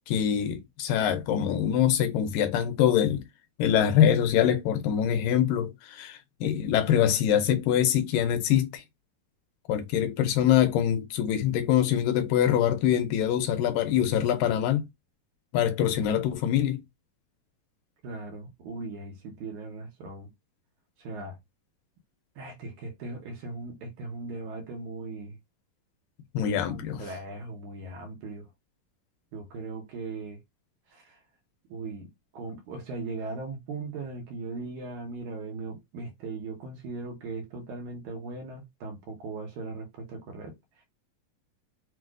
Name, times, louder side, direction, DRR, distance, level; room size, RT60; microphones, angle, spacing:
voice 1, 0.1-3.2 3.6-8.8 9.7-14.9 15.5-16.8 26.3-27.0, left 10 dB, 80° left, 2.2 m, -24 dB
voice 2, 18.0-20.3 21.0-21.4 22.4-25.4 26.4-28.5 29.3-30.4 30.9-31.2 31.7-40.8, right 3 dB, 70° right, 2.1 m, -39 dB
6.1 x 2.4 x 2.4 m
omnidirectional pair, 4.1 m